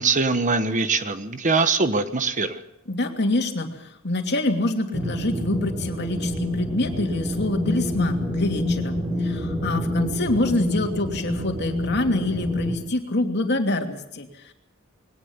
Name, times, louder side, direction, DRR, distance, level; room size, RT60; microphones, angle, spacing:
voice 1, 0.0-2.6, right 4 dB, 40° right, 10 dB, 1.3 m, -22 dB
voice 2, 2.9-14.5, left 2 dB, 55° left, 4 dB, 2.8 m, -26 dB
sound 1, 4.9-12.7, left 1 dB, 25° right, 4.4 m, -27 dB
21.5 x 18.5 x 7.2 m, 0.82 s
head